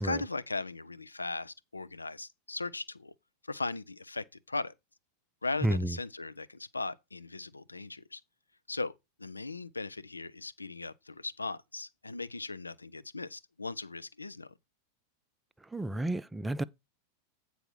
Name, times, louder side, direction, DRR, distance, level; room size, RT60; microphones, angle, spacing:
voice 1, 0.0-3.1 3.5-4.7 5.4-8.2 8.7-8.9 9.2-14.5, left 3 dB, 80° left, 0.5 m, -38 dB
voice 2, 5.6-5.9 15.7-16.6, right 1 dB, 10° right, 0.4 m, -31 dB
8.9 x 4.1 x 6.0 m
figure-of-eight pair, 90°, 0 cm